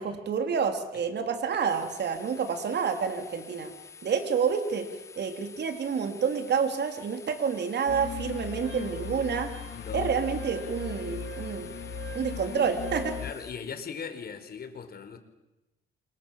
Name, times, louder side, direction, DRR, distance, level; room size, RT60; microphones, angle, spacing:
voice 1, 0.0-3.7 4.0-4.9 5.2-9.5 9.9-11.7 12.1-13.2, right 6 dB, 60° right, 6 dB, 3.6 m, -29 dB
sound 1, 1.7-13.5, left 7 dB, 15° left, 3.5 m, -49 dB
sound 2, 7.9-13.3, left 9 dB, 75° left, 4.3 m, -38 dB
Wind instrument woodwind instrument, 8.6-13.2, right 6 dB, 80° right, 7.7 m, -44 dB
voice 2, 9.7-10.1 13.2-15.2, left 6 dB, 50° left, 8 dB, 4.6 m, -39 dB
28.5 x 26.5 x 7.5 m, 1.0 s
cardioid pair, 90°, 20 cm